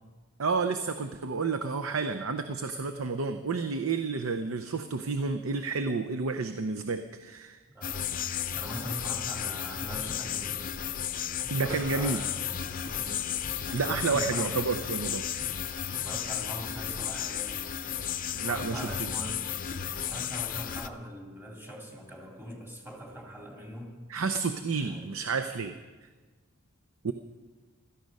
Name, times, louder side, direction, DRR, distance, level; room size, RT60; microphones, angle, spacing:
voice 1, 0.4-7.6 11.5-12.2 13.7-15.3 18.3-19.1 24.1-25.7 27.0-27.1, right 4 dB, 70° right, 7 dB, 0.7 m, -30 dB
voice 2, 7.7-8.2 8.5-10.7 11.1-12.5 12.8-13.2 13.6-13.7 14.1-14.5 15.9-17.5 18.5-19.4 20.0-24.0 24.8-25.1, equal, 10° right, -1 dB, 2.9 m, -42 dB
sound 1, 7.8-20.9, left 9 dB, 40° left, 0.6 m, -34 dB
sound 2, 11.6-18.4, right 1 dB, 40° right, 4.6 m, -52 dB
16.5 x 13.5 x 5.4 m, 1.3 s
head